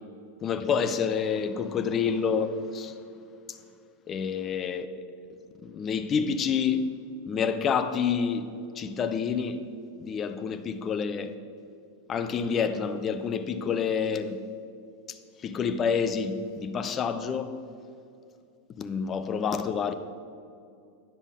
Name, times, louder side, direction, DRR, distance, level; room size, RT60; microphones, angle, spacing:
voice 1, 0.4-2.9 4.1-4.9 5.6-6.9 7.3-8.5 8.8-9.6 10.0-11.3 12.1-14.4 15.4-17.6 18.8-19.9, left 6 dB, 25° left, 0.6 m, -28 dB
9.9 x 5.4 x 6.2 m
figure-of-eight pair, 90°, 0 cm